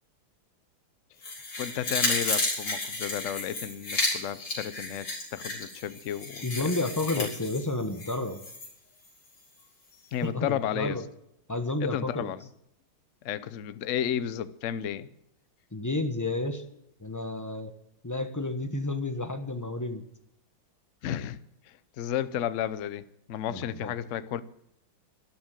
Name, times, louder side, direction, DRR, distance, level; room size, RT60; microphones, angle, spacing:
sound 1, 1.2-8.7 9.1-9.2, left 2 dB, 55° left, 5.2 m, -32 dB
voice 1, 1.6-6.7 7.2-7.3 10.1-11.0 11.8-12.5 13.2-15.1 21.0-21.4 21.7-23.0 23.3-24.4, left 10 dB, 70° left, 14 dB, 0.7 m, -32 dB
voice 2, 6.4-8.4 10.2-11.0 11.5-12.3 15.7-16.6 17.0-17.7 18.0-20.0 23.5-23.9, left 2 dB, 20° left, 7 dB, 0.4 m, -31 dB
13.0 x 12.0 x 7.6 m, 0.79 s
omnidirectional pair, 2.3 m